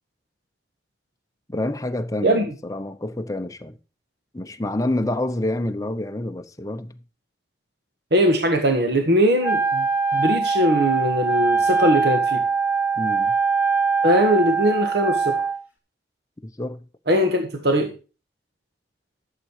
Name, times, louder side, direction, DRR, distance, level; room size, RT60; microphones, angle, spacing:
voice 1, 1.5-3.8 4.3-7.0 13.0-13.4 16.4-16.8, left 1 dB, 20° left, 0.8 m, -28 dB
voice 2, 8.1-9.9 10.1-12.4 14.0-15.4 17.1-17.9, equal, 65° right, 1.6 m, -20 dB
Wind instrument woodwind instrument, 9.4-15.6, right 5 dB, 10° right, 2.3 m, -22 dB
11.5 x 7.6 x 4.8 m
head